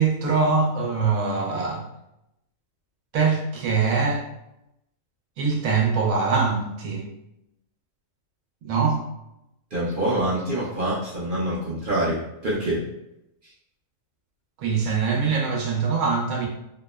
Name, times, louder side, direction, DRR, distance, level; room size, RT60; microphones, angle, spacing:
voice 1, 0.0-1.8 3.1-4.2 5.4-7.1 8.6-9.0 14.6-16.5, right 5 dB, 90° right, 0 dB, 1.0 m, -23 dB
voice 2, 9.7-12.8, right 1 dB, 60° right, -6 dB, 0.5 m, -25 dB
2.7 x 2.0 x 2.2 m, 0.85 s
omnidirectional pair, 1.4 m